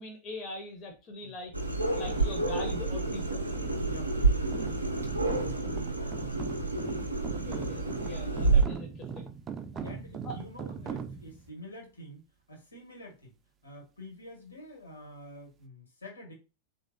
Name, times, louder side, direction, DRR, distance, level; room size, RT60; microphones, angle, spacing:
voice 1, 0.0-1.5 1.9-3.4 7.3-9.3 9.7-10.0 10.2-10.3, left 2 dB, 35° left, 3 dB, 0.6 m, -42 dB
sound 1, 1.5-8.6, right 3 dB, 85° right, 0.5 m, -29 dB
sound 2, 2.0-11.5, right 6 dB, 25° right, 0.4 m, -41 dB
voice 2, 3.7-6.0 9.5-9.6 9.8-12.2 12.5-13.3 13.6-16.3, left 1 dB, 80° left, 0 dB, 1.4 m, -48 dB
3.2 x 2.6 x 2.6 m, 0.29 s
figure-of-eight pair, 90°, 0 cm